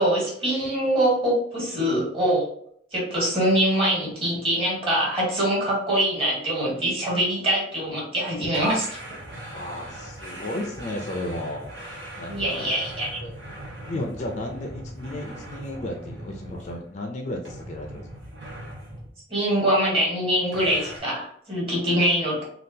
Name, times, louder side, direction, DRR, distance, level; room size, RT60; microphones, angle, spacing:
voice 1, 0.0-2.4 2.9-8.9 12.3-13.1 19.3-22.4, right 1 dB, 30° right, -4 dB, 1.4 m, -23 dB
sound 1, 8.5-17.0 17.4-19.2 20.5-21.0, right 1 dB, 70° right, 1.2 m, -40 dB
voice 2, 9.5-11.8 12.1-12.7 13.2-13.4 13.9-18.1, left 1 dB, 35° left, 2 dB, 0.4 m, -33 dB
3.6 x 2.3 x 2.7 m, 0.65 s
head